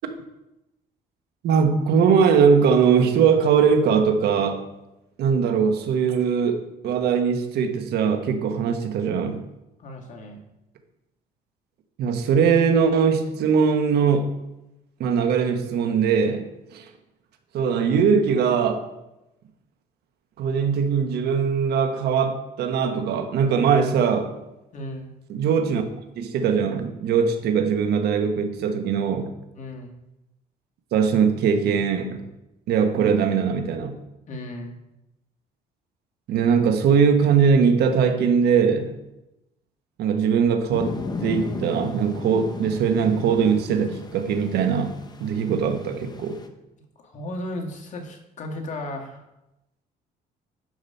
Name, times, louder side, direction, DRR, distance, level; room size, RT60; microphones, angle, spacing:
voice 1, 1.4-4.6 5.2-9.4 12.0-14.3 15.0-16.4 16.7-16.9 17.5-18.8 20.4-24.3 25.3-25.8 26.2-29.3 30.9-32.3 32.7-34.0 36.3-38.9 40.0-46.4, right 6 dB, 70° right, 7 dB, 1.3 m, -21 dB
voice 2, 9.8-10.4 24.7-25.1 29.5-29.9 34.3-34.8 47.0-49.3, left 1 dB, 45° left, 3 dB, 1.8 m, -35 dB
sound 1, 40.7-46.5, left 4 dB, 25° left, 1.0 m, -35 dB
11.0 x 4.9 x 5.6 m, 0.92 s
cardioid pair, 110°, 17 cm